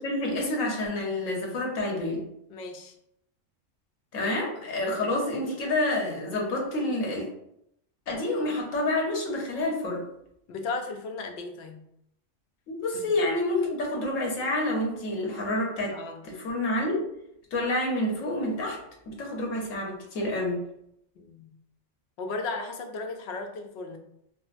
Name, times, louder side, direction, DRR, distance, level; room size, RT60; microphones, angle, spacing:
voice 1, 0.0-2.3 4.1-7.3 8.1-10.0 12.7-15.9 16.2-17.0 17.5-18.8 19.1-20.6, left 1 dB, 85° left, -1 dB, 1.3 m, -28 dB
voice 2, 2.5-2.9 10.5-11.8 12.9-13.1 15.9-16.2 21.2-21.6 22.2-24.0, left 3 dB, 65° left, 4 dB, 0.8 m, -35 dB
4.8 x 2.0 x 2.5 m, 0.76 s
omnidirectional pair, 1.3 m